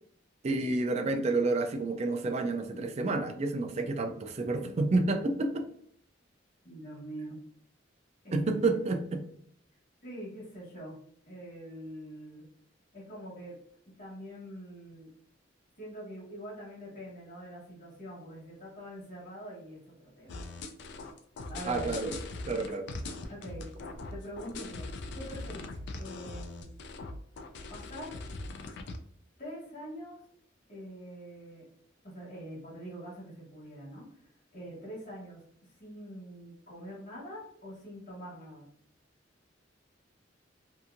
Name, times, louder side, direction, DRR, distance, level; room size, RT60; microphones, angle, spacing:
voice 1, 0.4-5.7 8.3-9.2 21.7-22.1 22.5-22.9, right 3 dB, 35° right, 7 dB, 0.4 m, -29 dB
voice 2, 6.6-7.4 8.2-8.8 10.0-11.0 11.3-12.5 12.9-13.6 14.0-15.1 15.8-20.4 21.5-22.0 23.3-23.7 24.1-24.9 25.1-25.7 26.0-26.7 27.7-28.1 29.4-30.2 30.7-31.7 32.0-35.4 35.8-38.7, equal, 45° left, -6 dB, 1.1 m, -44 dB
sound 1, 20.3-29.0, left 2 dB, 65° left, 0.3 m, -41 dB
2.8 x 2.6 x 2.4 m, 0.65 s
head